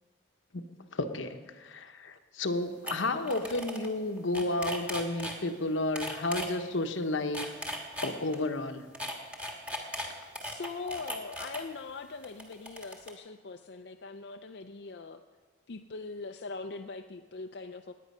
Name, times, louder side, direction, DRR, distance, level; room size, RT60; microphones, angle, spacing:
voice 1, 0.9-7.5 8.0-8.9, left 2 dB, 80° left, 7 dB, 1.0 m, -32 dB
sound 1, 2.5-2.6 2.9-3.0 3.2-3.9 4.2-5.4 6.0-6.5 7.2-8.4 8.9-11.6 12.2-13.1, equal, 5° right, 1.4 m, -37 dB
voice 2, 10.4-15.2 15.7-17.9, left 3 dB, 60° left, 5 dB, 0.5 m, -41 dB
18.5 x 9.2 x 5.5 m, 1.5 s
head